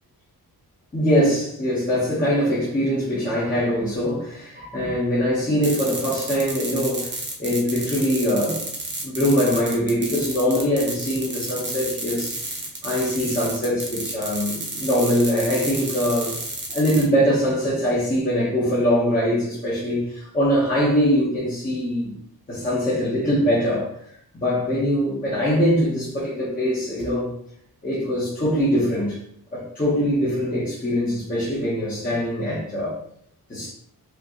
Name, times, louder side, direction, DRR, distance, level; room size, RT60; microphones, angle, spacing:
voice 1, 0.9-8.6 9.0-12.4 12.8-16.3 16.7-22.1 22.5-23.9 24.3-27.3 27.8-29.2 29.5-32.9 33.5-33.7, equal, 20° left, 1.1 m, -22 dB
sound 1, 5.6-17.0, right 2 dB, 30° right, 0.9 m, -31 dB
5.0 x 3.0 x 3.0 m
wide cardioid pair, 175°, 38 cm